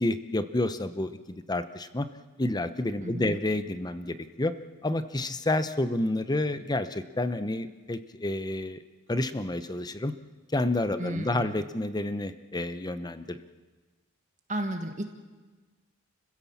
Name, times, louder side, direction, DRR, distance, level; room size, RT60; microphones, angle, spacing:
voice 1, 0.0-2.1 2.4-4.5 4.8-8.8 9.1-10.1 10.5-13.4, left 2 dB, 20° left, 11 dB, 0.9 m, -29 dB
voice 2, 3.0-3.4 11.0-11.6 14.5-15.0, right 1 dB, 35° right, 5 dB, 1.6 m, -33 dB
30.0 x 16.0 x 7.2 m, 1.3 s
head